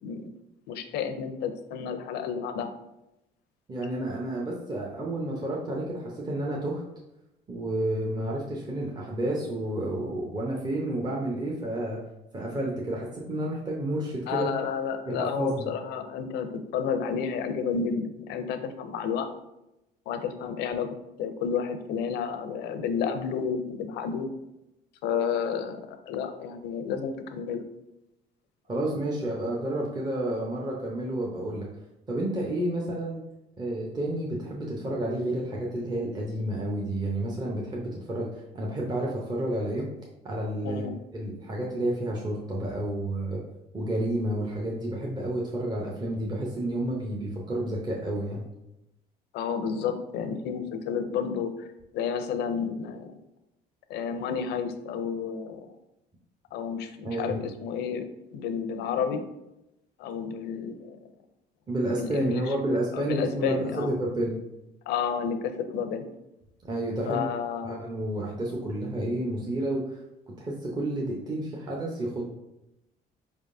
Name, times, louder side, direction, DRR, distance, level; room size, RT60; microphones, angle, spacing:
voice 1, 0.7-2.7 14.3-19.3 20.1-20.9 21.2-24.3 25.0-27.6 40.6-40.9 49.3-51.7 51.9-53.1 53.9-55.7 56.5-59.2 60.0-61.0 62.0-62.4 62.7-63.9 64.9-66.1 67.1-67.8, left 6 dB, 80° left, 8 dB, 0.5 m, -31 dB
voice 2, 3.7-6.8 7.5-12.0 12.3-14.5 15.1-15.7 28.7-31.7 32.1-33.2 33.6-39.9 40.2-40.8 41.1-43.4 43.7-48.4 57.0-57.4 61.7-64.4 66.6-67.2 67.6-70.0 70.4-72.3, right 1 dB, 25° right, -3 dB, 0.7 m, -30 dB
4.4 x 3.5 x 2.6 m, 0.89 s
cardioid pair, 110°, 17 cm